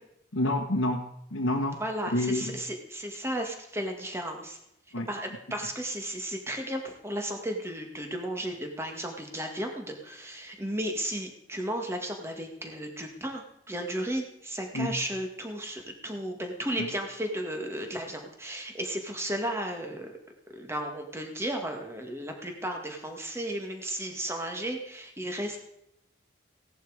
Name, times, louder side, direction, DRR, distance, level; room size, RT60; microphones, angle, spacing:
voice 1, 0.3-1.0 1.3-1.8 2.1-2.6 4.9-5.1 14.7-14.9 16.8-16.9, left 1 dB, 75° left, 0 dB, 1.5 m, -28 dB
voice 2, 1.8-4.6 5.1-20.1 20.5-25.7, right 1 dB, 15° right, 3 dB, 2.0 m, -34 dB
17.0 x 11.0 x 5.1 m, 0.80 s
head